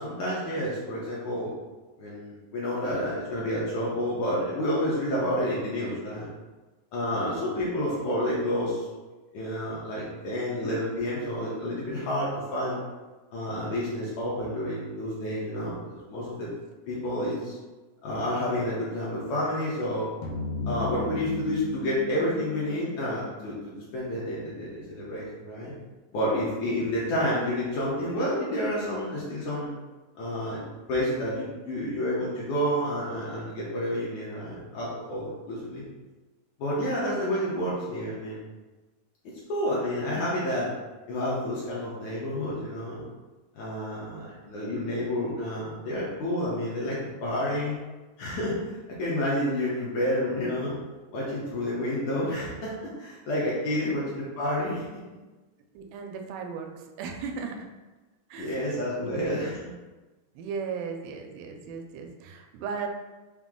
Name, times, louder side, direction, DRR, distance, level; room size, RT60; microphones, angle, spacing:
voice 1, 0.0-1.5 2.0-6.3 6.9-8.8 9.3-12.8 13.3-16.5 16.9-17.6 18.0-20.1 20.6-23.6 23.9-25.7 26.1-29.7 30.2-35.8 36.6-38.4 39.5-40.7 41.1-43.0 43.6-47.0 47.2-47.8 48.2-50.8 51.1-52.7 53.0-54.8 58.4-59.7, left 1 dB, 70° left, -7 dB, 1.9 m, -29 dB
sound 1, 20.2-24.6, left 4 dB, 85° left, 2.6 m, -37 dB
voice 2, 55.7-57.7 58.3-59.5 60.4-62.9, right 5 dB, 85° right, 4 dB, 2.2 m, -37 dB
6.0 x 2.0 x 3.6 m, 1.2 s
omnidirectional pair, 4.1 m